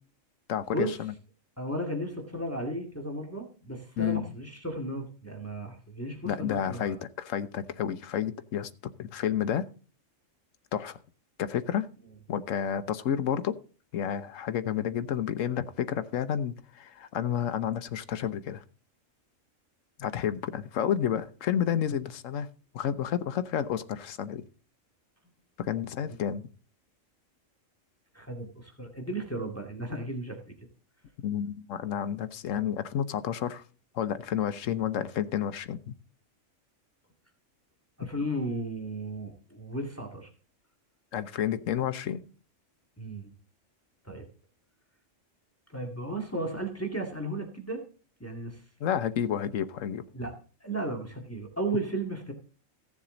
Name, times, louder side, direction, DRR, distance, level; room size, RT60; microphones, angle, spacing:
voice 1, 0.5-1.1 4.0-4.2 6.2-8.7 9.0-9.6 10.7-11.0 11.4-11.9 12.3-13.6 13.9-18.6 20.0-22.5 22.7-24.4 25.6-26.4 31.2-33.6 33.9-36.0 41.1-42.2 48.8-50.0, left 9 dB, 85° left, 11 dB, 1.2 m, -30 dB
voice 2, 1.6-7.0 28.1-30.4 38.0-40.3 43.0-43.3 44.0-44.2 45.7-47.8 48.2-48.6 50.1-52.3, right 1 dB, 10° left, 2 dB, 2.0 m, -34 dB
15.5 x 7.3 x 3.9 m, 0.37 s
omnidirectional pair, 1.3 m